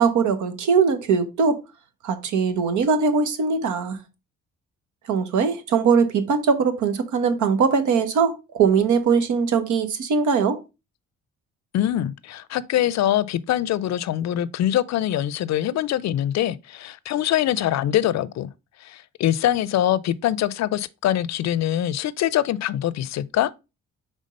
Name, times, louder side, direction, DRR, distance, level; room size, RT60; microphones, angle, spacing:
voice 1, 0.0-1.6 2.0-4.0 5.1-10.6, right 5 dB, 80° right, 1.1 m, -21 dB
voice 2, 11.7-18.5 18.8-23.5, left 12 dB, 60° left, 0.5 m, -23 dB
5.3 x 3.6 x 5.1 m
cardioid pair, 90°, 30 cm